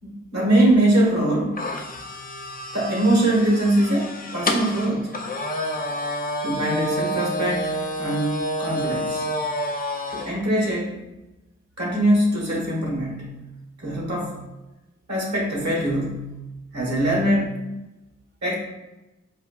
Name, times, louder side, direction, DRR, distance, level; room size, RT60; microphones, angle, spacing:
voice 1, 0.0-1.6 2.7-5.4 6.4-9.3 10.1-11.0 11.8-13.3 13.8-14.4 15.1-16.4 16.7-17.6 18.4-18.5, right 1 dB, 70° right, -3 dB, 1.3 m, -22 dB
sound 1, 1.6-10.3, equal, 30° left, 0.4 m, -29 dB
4.2 x 2.2 x 2.3 m, 1.0 s
cardioid pair, 45°, 29 cm